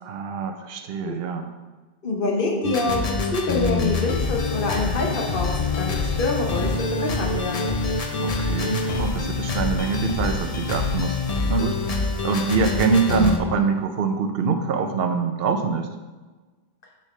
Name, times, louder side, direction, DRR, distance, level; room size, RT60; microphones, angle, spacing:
voice 1, 0.0-1.5 8.2-11.2 11.5-15.9, right 5 dB, 70° right, 7 dB, 0.9 m, -24 dB
voice 2, 2.0-7.7, left 2 dB, 60° left, 0 dB, 1.2 m, -26 dB
sound 1, 2.6-13.4, left 3 dB, 45° left, 0.6 m, -26 dB
6.3 x 5.7 x 3.2 m, 1.3 s
omnidirectional pair, 1.0 m